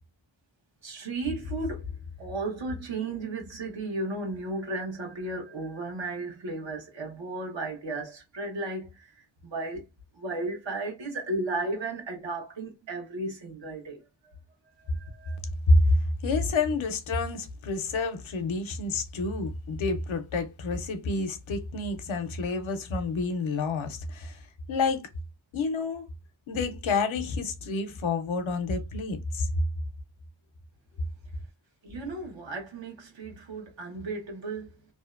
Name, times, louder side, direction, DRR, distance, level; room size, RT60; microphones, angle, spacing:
voice 1, 0.8-9.8 10.1-14.0 14.8-15.4 31.8-34.8, right 2 dB, 75° right, 1.0 m, -34 dB
voice 2, 15.7-16.0 16.2-24.4 24.7-25.0 25.5-26.1 26.5-29.5, left 3 dB, 85° left, 0.6 m, -28 dB
2.6 x 2.1 x 2.3 m
cardioid pair, 40°, 46 cm